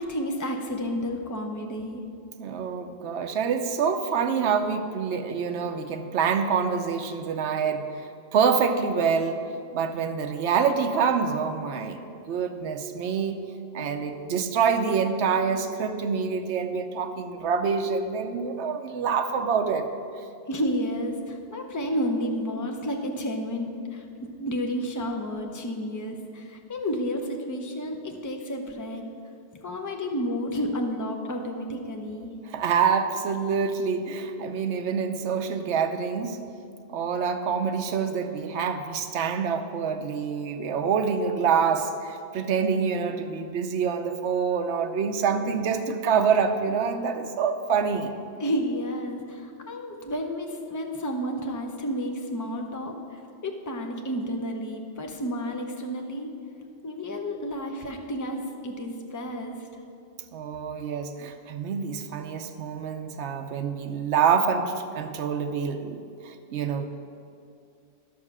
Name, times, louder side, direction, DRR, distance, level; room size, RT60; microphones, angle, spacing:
voice 1, 0.0-2.0 20.5-24.1 24.4-29.0 29.6-32.3 48.4-56.3 56.8-59.6, equal, 20° left, 2 dB, 0.8 m, -31 dB
voice 2, 2.4-9.4 9.7-13.4 13.7-19.9 32.5-36.4 36.9-48.1 60.3-66.9, right 6 dB, 70° right, 6 dB, 1.0 m, -26 dB
11.0 x 6.5 x 6.1 m, 2.4 s
omnidirectional pair, 1.2 m